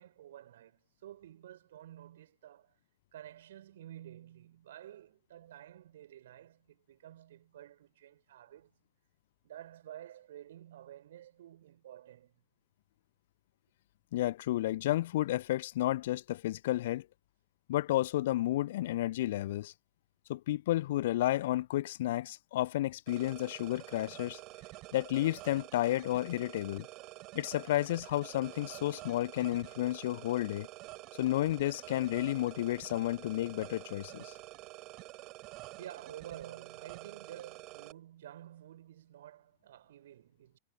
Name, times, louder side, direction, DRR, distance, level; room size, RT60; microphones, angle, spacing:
voice 1, 0.0-2.8 3.1-8.8 9.4-12.4 35.8-40.6, right 12 dB, 60° right, 7.0 m, -51 dB
voice 2, 14.1-17.1 17.7-19.7 20.3-24.4 24.9-26.9 27.3-30.7 31.2-34.3, left 15 dB, 55° left, 0.6 m, -31 dB
sound 1, 23.1-37.9, right 21 dB, 40° right, 7.6 m, -48 dB
figure-of-eight pair, 90°, 0 cm